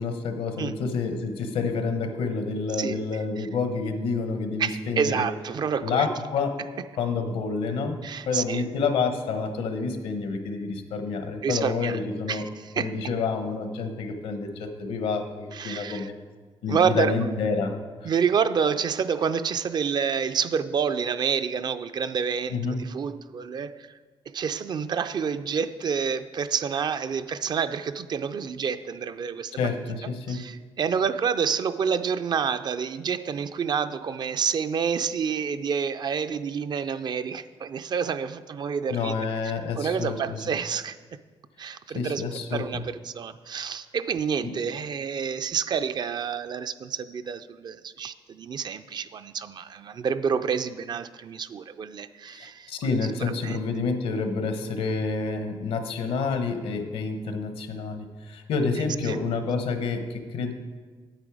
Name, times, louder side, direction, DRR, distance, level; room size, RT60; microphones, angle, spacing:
voice 1, 0.0-5.3 5.8-6.6 7.0-8.0 8.3-12.5 12.7-16.1 16.6-18.1 22.5-22.8 29.6-30.4 38.9-40.4 41.9-42.8 44.4-44.5 52.3-60.5, left 4 dB, 85° left, 7 dB, 1.1 m, -28 dB
voice 2, 4.6-6.1 8.0-8.6 11.4-12.0 12.3-12.9 15.5-16.1 16.7-17.2 18.0-23.9 24.3-29.6 30.3-39.2 39.8-41.0 41.6-42.2 42.5-53.6 59.1-59.2, right 6 dB, 45° right, 11 dB, 0.4 m, -28 dB
9.0 x 8.3 x 4.8 m, 1.4 s
cardioid pair, 105°, 10 cm